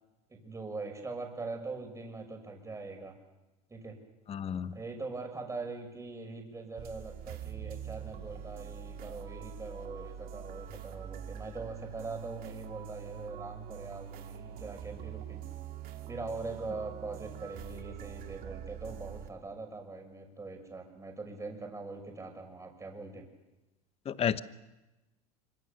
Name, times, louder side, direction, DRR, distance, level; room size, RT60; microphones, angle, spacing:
voice 1, 0.3-3.1 3.7-3.9 4.7-15.4 16.1-23.2, right 3 dB, 15° right, 3 dB, 6.5 m, -42 dB
voice 2, 4.3-4.8 24.1-24.4, left 8 dB, 30° left, 14 dB, 1.1 m, -31 dB
sound 1, 6.8-19.3, right 9 dB, 50° right, 2.6 m, -44 dB
25.5 x 24.5 x 6.9 m, 1.1 s
hypercardioid pair, 90°, 19 cm